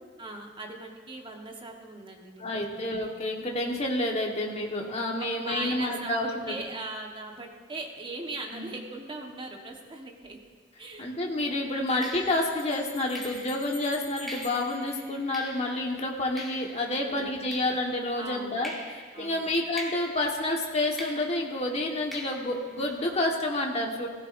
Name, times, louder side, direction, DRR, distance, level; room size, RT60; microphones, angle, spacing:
voice 1, 0.2-2.7 5.2-10.4 10.8-11.1 16.9-17.5 18.2-18.6 19.1-19.5, right 2 dB, 25° right, 1 dB, 1.3 m, -39 dB
voice 2, 2.4-6.6 8.5-8.7 11.0-24.1, left 1 dB, 35° left, 0 dB, 1.4 m, -29 dB
Bell, 10.2-10.3 11.9-15.8, left 5 dB, 60° left, 4.7 m, -48 dB
sound 1, 10.9-11.1 12.0-18.2 18.6-23.4, equal, ahead, 2.2 m, -45 dB
16.5 x 16.0 x 2.6 m, 1.5 s
head